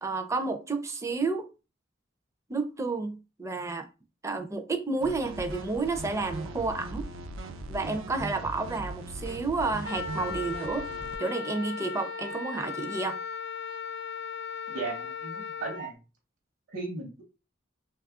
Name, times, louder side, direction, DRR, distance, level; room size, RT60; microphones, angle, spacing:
voice 1, 0.0-1.5 2.5-3.9 4.2-7.1 7.7-10.9 11.2-13.2, right 3 dB, 15° right, 0.4 m, -31 dB
sound 1, 5.0-11.2, right 2 dB, 90° right, 0.5 m, -39 dB
Wind instrument woodwind instrument, 9.8-15.9, left 5 dB, 75° left, 0.7 m, -37 dB
voice 2, 14.7-16.0 16.7-17.2, right 3 dB, 65° right, 0.8 m, -36 dB
3.1 x 2.3 x 3.5 m
head